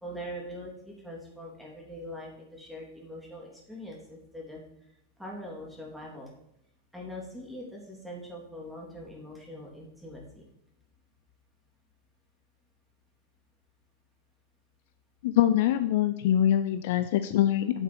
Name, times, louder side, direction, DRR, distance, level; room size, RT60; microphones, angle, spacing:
voice 1, 0.0-4.6 5.2-6.3 6.9-10.5, equal, ahead, -3 dB, 3.3 m, -42 dB
voice 2, 15.2-17.8, left 11 dB, 50° left, 10 dB, 0.5 m, -24 dB
9.0 x 7.4 x 4.6 m, 0.78 s
figure-of-eight pair, 90°, 0 cm